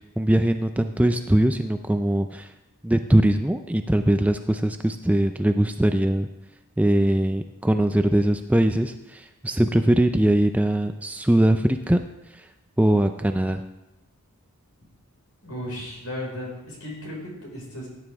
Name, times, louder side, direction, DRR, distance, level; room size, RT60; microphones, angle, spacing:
voice 1, 0.0-2.5 2.8-6.3 6.8-12.0 12.3-12.5 12.8-13.6, right 1 dB, 5° right, 7 dB, 0.4 m, -21 dB
voice 2, 15.4-17.9, left 1 dB, 75° left, -2 dB, 5.1 m, -35 dB
17.0 x 9.7 x 3.6 m, 0.93 s
head